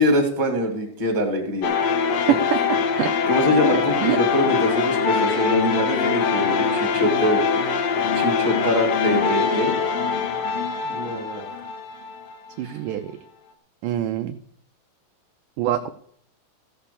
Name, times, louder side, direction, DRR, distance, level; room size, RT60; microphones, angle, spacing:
voice 1, 0.0-1.7 2.2-2.3 3.3-7.4 8.1-9.7 10.8-11.4 12.6-12.8, left 1 dB, 15° right, 3 dB, 1.5 m, -23 dB
sound 1, 1.6-12.5, left 5 dB, 75° left, 1.5 m, -23 dB
voice 2, 2.3-2.6 3.0-3.1 4.0-4.2 12.6-13.1 13.8-14.4 15.6-15.9, right 11 dB, 80° right, 9 dB, 1.9 m, -24 dB
15.0 x 5.8 x 6.9 m, 0.63 s
omnidirectional pair, 4.4 m